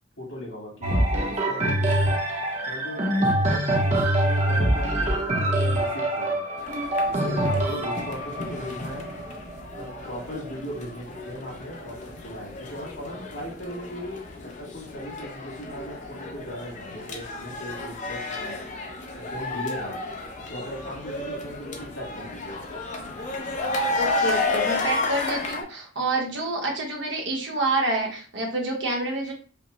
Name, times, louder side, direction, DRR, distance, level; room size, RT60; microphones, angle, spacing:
voice 1, 0.2-2.2 2.6-6.4 7.0-9.1 9.8-18.6 19.1-20.0 20.5-22.6, equal, 85° left, -2 dB, 2.0 m, -38 dB
sound 1, 0.8-10.6 11.3-11.4, right 1 dB, 35° right, 0.6 m, -25 dB
sound 2, 6.6-25.6, left 2 dB, 35° left, 0.6 m, -32 dB
voice 2, 23.9-29.3, right 2 dB, 60° right, 2 dB, 1.0 m, -28 dB
5.0 x 2.1 x 3.1 m, 0.39 s
head